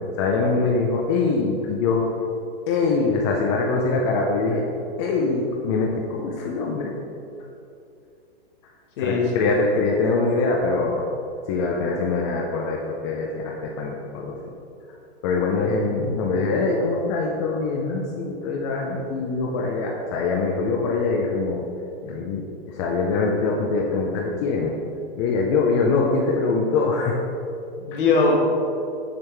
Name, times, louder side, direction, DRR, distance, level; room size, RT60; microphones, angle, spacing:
voice 1, 0.2-2.1 2.7-4.6 5.0-6.9 9.0-11.1 11.5-14.4 15.2-21.6 22.0-24.7 25.2-27.2 27.9-28.0, left 3 dB, 30° left, -1 dB, 0.4 m, -23 dB
voice 2, 9.0-9.5 15.8-16.3 27.8-28.4, left 3 dB, 55° left, -1 dB, 1.4 m, -22 dB
6.6 x 4.5 x 3.4 m, 2.6 s
hypercardioid pair, 145°, 31 cm